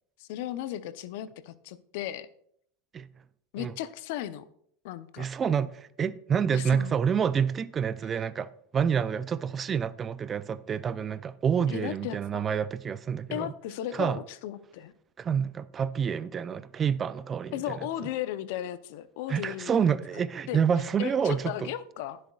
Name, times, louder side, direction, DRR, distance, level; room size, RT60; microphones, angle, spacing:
voice 1, 0.2-2.3 3.5-4.4 4.8-5.3 6.5-7.0 11.7-12.4 13.3-14.9 17.5-20.0 20.5-20.6 21.0-22.2, left 12 dB, 65° left, 0.7 m, -35 dB
voice 2, 5.2-13.5 13.9-14.2 15.2-17.8 19.3-21.7, right 7 dB, 30° right, 0.5 m, -28 dB
20.5 x 7.7 x 2.4 m
hypercardioid pair, 105°, 0 cm